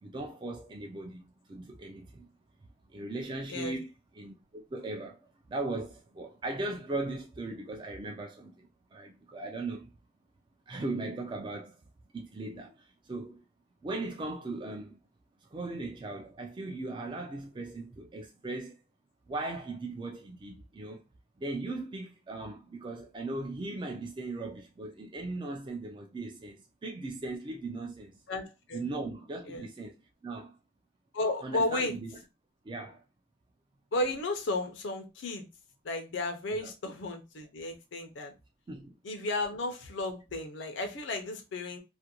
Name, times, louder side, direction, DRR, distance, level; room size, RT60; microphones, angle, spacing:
voice 1, 0.0-1.2 1.5-2.3 2.9-9.9 10.7-11.8 12.1-13.4 13.8-15.0 15.5-18.8 19.3-21.0 21.4-28.2 28.7-30.5 31.4-32.2 32.6-33.0 36.5-36.7 38.7-38.9, right 2 dB, 25° right, 0.3 m, -38 dB
voice 2, 28.3-28.8 29.5-29.6 31.1-32.0 33.9-35.5 35.8-38.3 39.0-41.8, left 2 dB, 85° left, 0.5 m, -33 dB
2.4 x 2.2 x 2.8 m
head